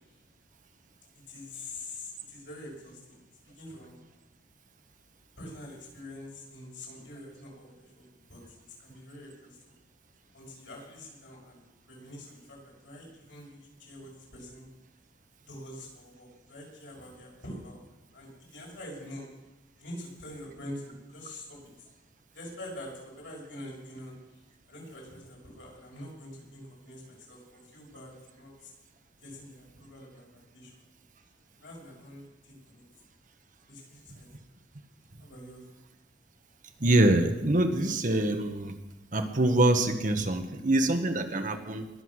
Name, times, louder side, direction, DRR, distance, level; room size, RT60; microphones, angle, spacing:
voice 1, 1.3-3.2 3.5-4.0 5.4-8.4 8.8-9.7 10.3-11.6 11.9-14.6 15.4-17.8 18.1-19.2 19.8-21.7 22.3-24.1 24.7-28.7 29.2-30.8 31.6-32.8 33.7-34.3 35.2-35.6, left 1 dB, 90° left, -2 dB, 6.7 m, -45 dB
voice 2, 36.8-38.7 39.1-41.9, right 1 dB, 45° right, 6 dB, 1.2 m, -25 dB
21.5 x 7.8 x 6.5 m, 1.0 s
head